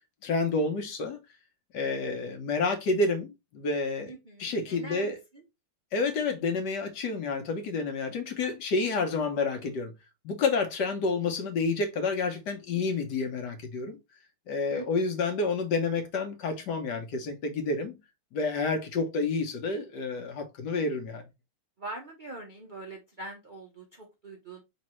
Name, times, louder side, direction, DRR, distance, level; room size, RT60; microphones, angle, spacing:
voice 1, 0.2-1.2 1.7-4.1 4.4-5.1 5.9-9.9 10.2-14.0 14.5-18.0 18.3-21.2, left 3 dB, 60° left, 1.3 m, -29 dB
voice 2, 4.1-5.4 8.4-8.5 14.7-15.2 21.8-24.6, right 2 dB, 80° right, 0.4 m, -43 dB
5.2 x 3.2 x 3.0 m
omnidirectional pair, 2.3 m